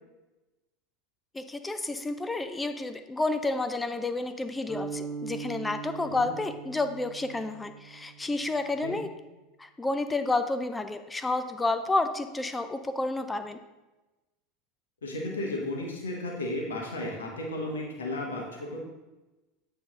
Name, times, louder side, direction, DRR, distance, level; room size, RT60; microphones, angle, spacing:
voice 1, 1.3-9.1 9.6-13.6, left 2 dB, 10° left, 9 dB, 0.4 m, -30 dB
sound 1, 4.7-8.6, right 5 dB, 10° right, 1.2 m, -40 dB
voice 2, 15.0-18.8, left 1 dB, 70° left, -1 dB, 1.3 m, -34 dB
8.7 x 3.4 x 3.7 m, 1.1 s
figure-of-eight pair, 75°, 0 cm